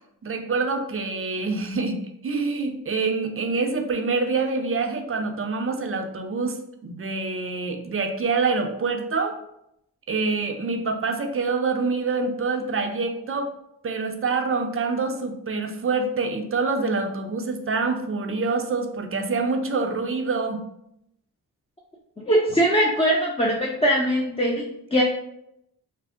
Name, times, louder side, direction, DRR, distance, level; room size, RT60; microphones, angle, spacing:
voice 1, 0.2-9.4 10.1-13.5 13.8-20.6, right 4 dB, 35° right, 5 dB, 0.5 m, -26 dB
voice 2, 22.3-24.7 24.9-25.0, equal, 15° left, -3 dB, 0.5 m, -21 dB
2.5 x 2.0 x 3.5 m, 0.79 s
cardioid pair, 45°, 40 cm